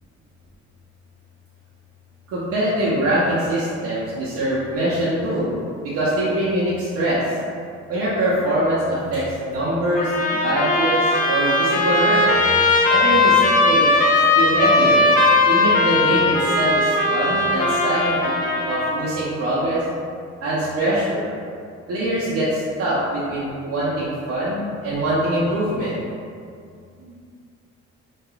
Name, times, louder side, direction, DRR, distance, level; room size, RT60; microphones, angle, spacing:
voice 1, 2.3-5.5 5.8-7.2 7.9-12.3 12.9-13.9 14.4-15.0 15.5-18.3 18.6-19.8 20.4-21.2 21.9-26.0, right 1 dB, 50° right, -9 dB, 0.6 m, -23 dB
Trumpet, 9.9-19.1, left 2 dB, 30° left, 0.4 m, -18 dB
2.3 x 2.3 x 2.9 m, 2.3 s
cardioid pair, 90°, 30 cm